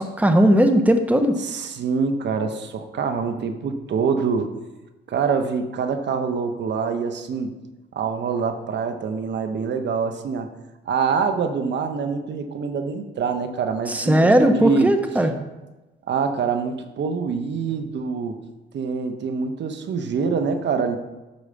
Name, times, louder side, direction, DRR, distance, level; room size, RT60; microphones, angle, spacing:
voice 1, 0.0-1.4 13.9-15.3, right 1 dB, 5° right, 7 dB, 1.0 m, -17 dB
voice 2, 1.4-4.6 5.1-7.5 7.9-10.5 10.8-14.9 16.1-18.4 18.7-21.0, right 5 dB, 60° right, 7 dB, 1.2 m, -25 dB
12.0 x 4.8 x 7.0 m, 1.1 s
cardioid pair, 90°, 20 cm